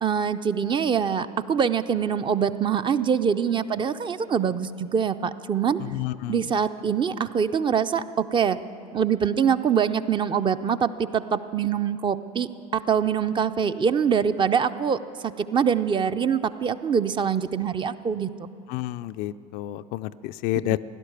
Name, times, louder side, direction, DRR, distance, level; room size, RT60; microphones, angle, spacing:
voice 1, 0.0-5.8 6.3-8.6 8.9-12.5 12.9-18.5, right 7 dB, 25° right, 11 dB, 0.5 m, -24 dB
voice 2, 5.8-6.5 18.7-20.8, left 16 dB, 50° left, 12 dB, 0.4 m, -30 dB
16.0 x 11.5 x 6.7 m, 2.6 s
hypercardioid pair, 75°, 20 cm